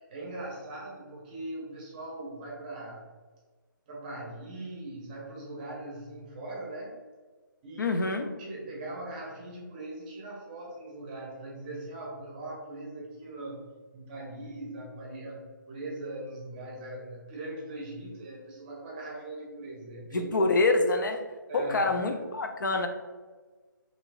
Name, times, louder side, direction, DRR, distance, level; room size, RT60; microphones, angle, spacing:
voice 1, 0.1-3.1 3.9-7.0 7.6-20.3 21.5-22.0, right 2 dB, 25° right, -3 dB, 0.7 m, -40 dB
voice 2, 7.8-8.3 20.1-21.2 21.5-22.9, left 3 dB, 65° left, 5 dB, 0.4 m, -26 dB
2.9 x 2.9 x 2.5 m, 1.4 s
figure-of-eight pair, 145°, 11 cm